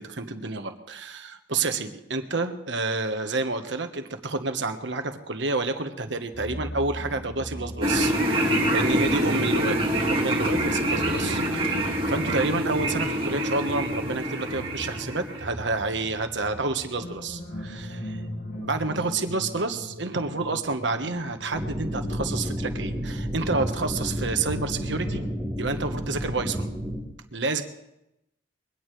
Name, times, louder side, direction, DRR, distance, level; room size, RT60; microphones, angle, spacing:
voice 1, 0.0-8.1 8.7-9.8 10.1-18.2 18.6-25.2 25.6-26.7 27.3-27.6, right 3 dB, 75° right, 7 dB, 1.4 m, -29 dB
sound 1, 6.3-25.3, equal, 90° left, 2.3 m, -38 dB
sound 2, 7.8-15.4, right 1 dB, 30° right, 2.1 m, -26 dB
sound 3, 21.5-27.0, equal, ahead, 4.3 m, -31 dB
22.5 x 17.0 x 3.4 m, 0.86 s
head